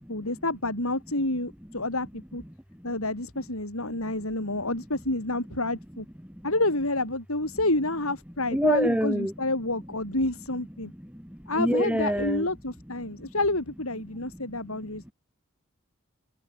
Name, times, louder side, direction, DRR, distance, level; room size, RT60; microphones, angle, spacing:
voice 1, 0.1-2.4 2.8-6.1 6.4-10.9 11.5-15.1, left 2 dB, 85° left, 7.1 m, -29 dB
voice 2, 8.5-9.3 11.0-12.5, equal, 5° right, 4.2 m, -26 dB
head